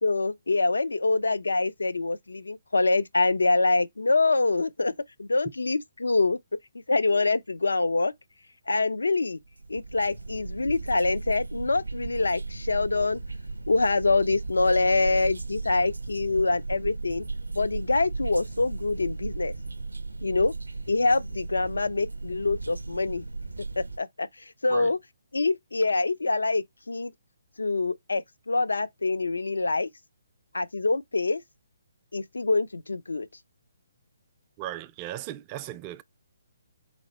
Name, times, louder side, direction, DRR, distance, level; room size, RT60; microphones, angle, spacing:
voice 1, 0.0-4.9 5.2-6.4 6.9-8.1 8.7-9.4 9.7-13.2 13.7-17.2 17.5-19.5 20.2-20.5 20.9-23.2 23.8-24.3 24.6-25.0 25.3-27.1 27.6-29.9 30.5-31.4 32.1-33.3, left 3 dB, 80° left, 0.5 m, -25 dB
sound 1, 9.4-24.0, right 3 dB, 90° right, 0.5 m, -36 dB
voice 2, 34.6-36.0, right 13 dB, 25° right, 0.4 m, -37 dB
2.9 x 2.8 x 4.1 m
figure-of-eight pair, 140°, 0 cm